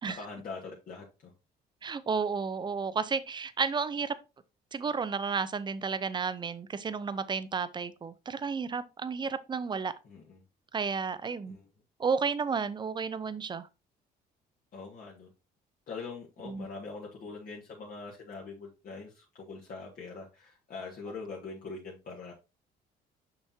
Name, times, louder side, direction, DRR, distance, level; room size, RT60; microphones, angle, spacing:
voice 1, 0.0-1.3 10.0-10.4 11.5-11.6 14.7-15.3 15.9-22.3, left 4 dB, 55° left, 1.7 m, -43 dB
voice 2, 1.8-4.2 4.7-9.9 10.7-11.6 12.0-13.7 16.4-16.7, right 5 dB, 25° right, 0.6 m, -32 dB
6.6 x 6.0 x 2.8 m
cardioid pair, 110°, 17 cm